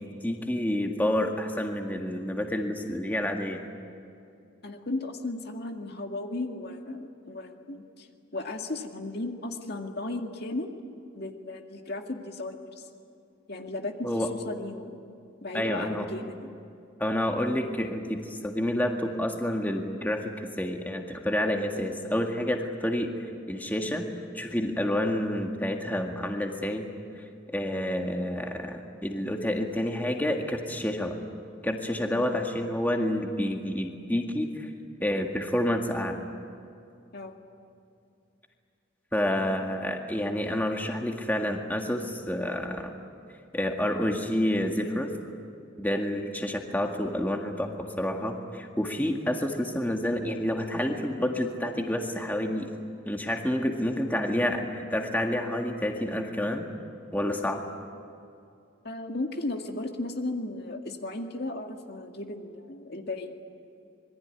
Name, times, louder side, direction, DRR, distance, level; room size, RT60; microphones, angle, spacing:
voice 1, 0.0-3.6 14.0-14.3 15.5-16.1 17.0-23.1 23.5-24.0 24.3-26.8 27.5-31.2 31.6-34.7 35.0-36.2 39.1-42.9 43.5-45.1 45.8-52.7 53.1-56.7 57.1-57.6, left 1 dB, 10° left, 2 dB, 1.9 m, -29 dB
voice 2, 4.6-10.7 11.2-12.9 13.5-15.0 15.4-16.5 37.1-37.3 58.8-63.3, left 2 dB, 55° left, 4 dB, 2.1 m, -35 dB
27.0 x 22.5 x 9.8 m, 2.6 s
head